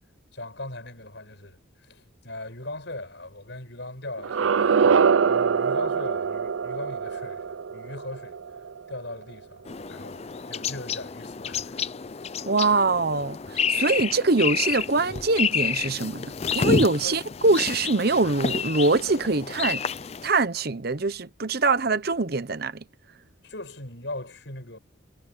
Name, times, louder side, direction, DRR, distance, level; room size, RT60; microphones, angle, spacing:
voice 1, 0.3-7.4 7.7-8.4 8.9-9.6 9.9-10.2 10.5-11.9 17.0-17.2 23.4-24.8, left 2 dB, 60° left, 7.5 m, -39 dB
sound 1, 4.2-9.1, right 6 dB, 80° right, 0.5 m, -24 dB
sound 2, 9.7-20.3, left 6 dB, 30° left, 0.5 m, -29 dB
voice 2, 12.5-19.8 20.2-22.8, right 3 dB, 50° right, 1.0 m, -23 dB
head